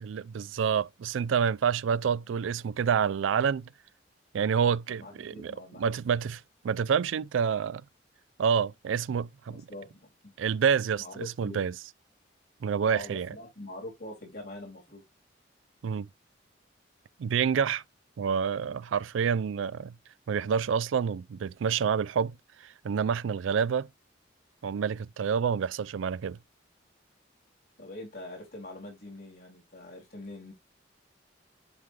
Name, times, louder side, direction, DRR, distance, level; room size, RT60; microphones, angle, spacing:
voice 1, 0.0-3.7 4.3-7.8 8.4-9.6 10.4-11.7 12.6-13.3 15.8-16.1 17.2-17.8 18.2-20.0 20.3-22.4 22.6-23.9 24.6-26.4, right 7 dB, 85° right, 0.4 m, -28 dB
voice 2, 4.9-5.9 9.5-10.3 11.0-11.6 12.8-15.0 27.8-30.5, left 1 dB, 55° left, 3.6 m, -44 dB
10.5 x 3.7 x 3.2 m
head